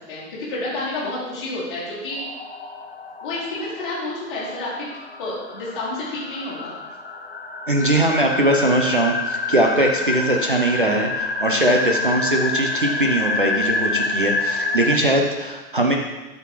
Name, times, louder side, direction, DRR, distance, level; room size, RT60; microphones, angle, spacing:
voice 1, 0.1-2.2 3.2-4.9 5.2-6.8, left 2 dB, 15° left, -9 dB, 1.7 m, -29 dB
sound 1, 2.1-15.0, left 3 dB, 40° left, 0.5 m, -27 dB
voice 2, 7.7-16.0, right 1 dB, 30° right, 1 dB, 0.6 m, -20 dB
9.4 x 6.0 x 4.6 m, 1.1 s
hypercardioid pair, 175°, 49 cm